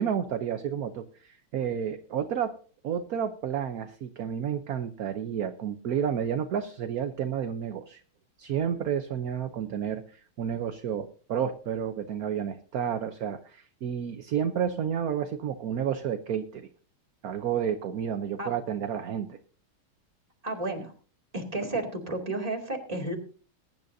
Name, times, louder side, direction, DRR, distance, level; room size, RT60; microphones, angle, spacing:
voice 1, 0.0-2.5 2.8-8.0 8.4-16.7 17.2-19.4, right 8 dB, 60° right, 8 dB, 1.1 m, -31 dB
voice 2, 20.4-20.9 21.3-23.2, right 2 dB, 15° right, 0 dB, 2.7 m, -32 dB
21.5 x 10.5 x 2.7 m, 0.40 s
omnidirectional pair, 2.3 m